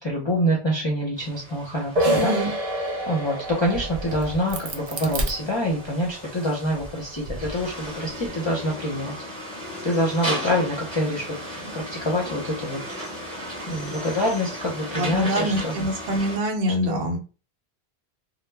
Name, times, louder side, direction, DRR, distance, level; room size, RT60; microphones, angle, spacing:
voice 1, 0.0-2.3 3.1-9.1 9.8-12.8 13.7-15.7 16.9-17.2, equal, 30° left, -4 dB, 0.6 m, -26 dB
sound 1, 1.2-16.4, equal, 5° left, 0.9 m, -36 dB
sound 2, 2.0-7.4, right 1 dB, 40° right, 0.8 m, -29 dB
voice 2, 2.1-2.5 13.8-13.9 15.0-17.2, equal, 75° right, 2 dB, 0.9 m, -25 dB
Crack, 3.5-6.1 6.6-8.3, right 2 dB, 55° right, 0.4 m, -34 dB
2.1 x 2.1 x 3.2 m, 0.34 s
omnidirectional pair, 1.1 m